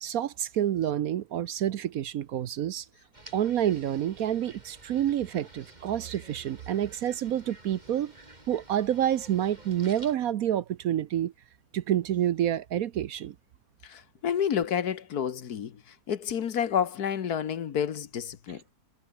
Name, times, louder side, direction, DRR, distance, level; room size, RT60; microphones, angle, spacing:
voice 1, 0.0-2.9 3.3-8.1 8.5-11.3 11.7-13.3, right 11 dB, 65° right, 1.1 m, -28 dB
sound 1, 3.1-10.2, right 1 dB, 25° right, 4.3 m, -51 dB
voice 2, 13.8-15.8 16.1-18.7, left 8 dB, 65° left, 1.7 m, -29 dB
omnidirectional pair, 1.8 m